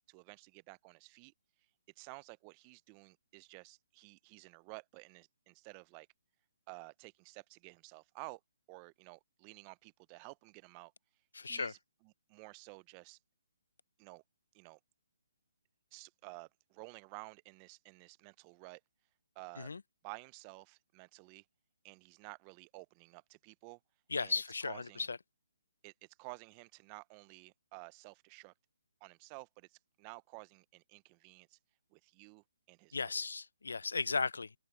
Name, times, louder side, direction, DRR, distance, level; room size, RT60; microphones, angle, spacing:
voice 1, 0.1-1.3 2.0-6.1 6.7-8.4 8.7-10.9 11.4-11.8 12.0-13.2 14.0-14.2 14.5-14.8 15.9-18.8 19.4-19.7 20.0-21.4 21.8-23.8 24.2-25.1 25.8-25.9 26.2-28.5 29.0-31.6 31.9-33.1, right 29 dB, 25° right, 0.5 m, -52 dB
voice 2, 11.3-11.7 19.6-19.8 24.1-25.2 32.9-34.5, left 4 dB, 85° left, 0.5 m, -36 dB
hypercardioid pair, 160°, 0 cm